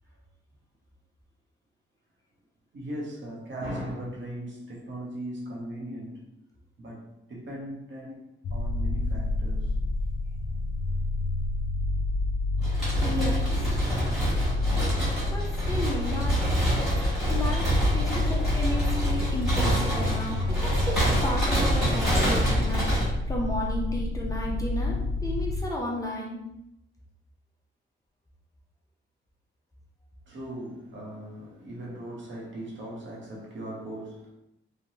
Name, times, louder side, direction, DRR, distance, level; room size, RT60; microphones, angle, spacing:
voice 1, 2.7-6.3 6.8-9.7 18.1-18.5 30.3-34.3, right 1 dB, 65° right, -3 dB, 0.9 m, -39 dB
sound 1, 8.4-25.6, left 2 dB, 85° left, 0.5 m, -28 dB
sound 2, 12.6-23.0, right 1 dB, ahead, 1.5 m, -27 dB
voice 2, 13.0-13.7 15.3-16.4 17.3-26.4, left 1 dB, 15° left, -3 dB, 0.5 m, -33 dB
3.1 x 2.2 x 2.7 m, 0.86 s
wide cardioid pair, 120°, 21 cm